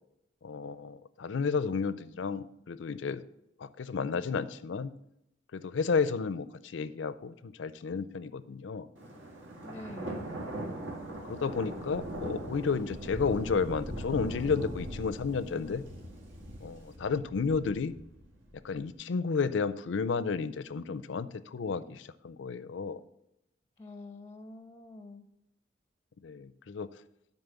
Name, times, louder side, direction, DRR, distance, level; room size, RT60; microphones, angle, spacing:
voice 1, 0.4-3.2 3.6-4.9 5.5-8.9 11.3-15.9 16.6-17.9 18.6-23.0 26.2-26.9, left 5 dB, 65° left, 16 dB, 0.5 m, -32 dB
Thunder, 9.0-18.8, right 1 dB, 75° right, 2.0 m, -41 dB
voice 2, 9.6-10.2 23.8-25.2, left 1 dB, 15° left, 9 dB, 0.5 m, -46 dB
9.8 x 4.3 x 6.9 m, 0.81 s
head